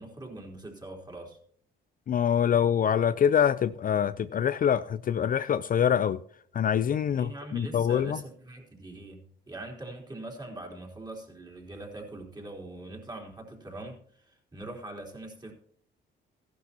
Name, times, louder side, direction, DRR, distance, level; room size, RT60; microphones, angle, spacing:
voice 1, 0.0-1.4 6.9-15.5, right 2 dB, 20° right, 3.7 m, -42 dB
voice 2, 2.1-6.2 6.5-8.2, left 8 dB, 45° left, 0.5 m, -25 dB
15.0 x 11.5 x 2.9 m
cardioid pair, 90°, 20 cm